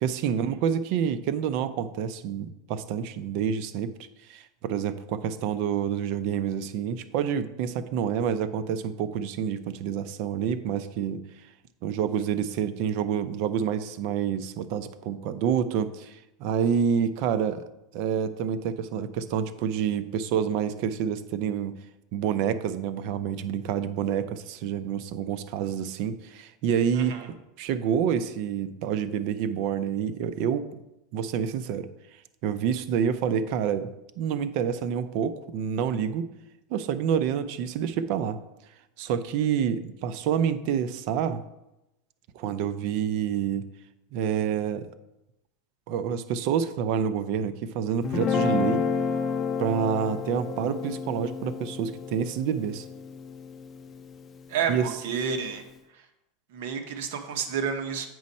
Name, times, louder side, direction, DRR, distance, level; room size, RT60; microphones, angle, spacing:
voice 1, 0.0-3.9 4.3-11.2 11.8-17.6 17.9-21.8 22.1-27.2 27.6-30.6 31.1-31.9 32.4-36.3 36.7-38.4 39.0-41.4 42.3-43.7 44.1-44.9 45.9-48.8 49.6-52.9 54.7-54.9, right 8 dB, 55° right, 12 dB, 0.5 m, -28 dB
voice 2, 26.9-27.3 54.5-55.6 55.9-56.0 56.5-58.1, right 6 dB, 70° right, 6 dB, 1.1 m, -30 dB
Guitar, 48.0-54.4, left 5 dB, 25° left, 0.6 m, -30 dB
7.7 x 5.3 x 4.2 m, 0.92 s
supercardioid pair, 140°, 0 cm